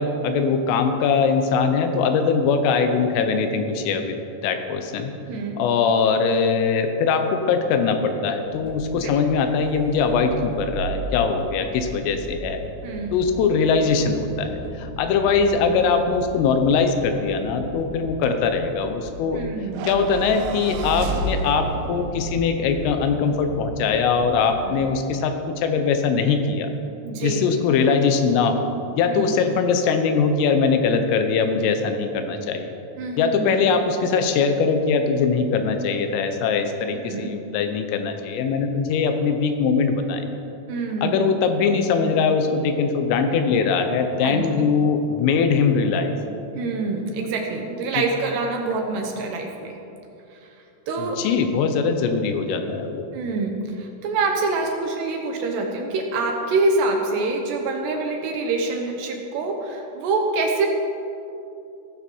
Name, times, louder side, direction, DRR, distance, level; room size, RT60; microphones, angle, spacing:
voice 1, 0.0-4.2 4.4-5.1 5.6-12.6 13.1-19.4 19.9-26.7 27.2-28.7 29.0-32.7 33.2-40.3 41.0-46.2 48.0-48.1 51.0-53.1, left 5 dB, 85° left, 6 dB, 3.7 m, -21 dB
voice 2, 5.3-5.6 8.9-9.1 12.8-13.1 19.3-19.9 24.7-24.8 27.0-27.5 29.1-29.3 33.0-33.6 37.0-37.3 40.7-41.3 44.2-44.7 46.6-49.7 50.3-50.4 50.9-51.2 53.1-60.7, right 3 dB, 70° right, 2 dB, 2.9 m, -26 dB
sound 1, 8.4-24.9, right 1 dB, 40° left, 2.9 m, -37 dB
sound 2, 19.7-24.2, right 5 dB, 85° right, 3.2 m, -32 dB
16.0 x 14.5 x 4.6 m, 2.8 s
omnidirectional pair, 5.7 m